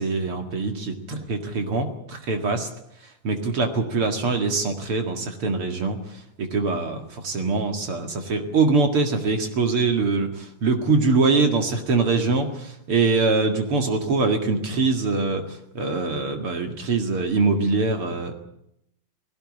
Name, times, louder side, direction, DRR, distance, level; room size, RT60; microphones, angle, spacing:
voice 1, 0.0-2.7 3.2-6.0 6.4-18.3, right 3 dB, 50° right, 5 dB, 2.7 m, -23 dB
19.0 x 16.5 x 9.9 m, 0.77 s
omnidirectional pair, 3.5 m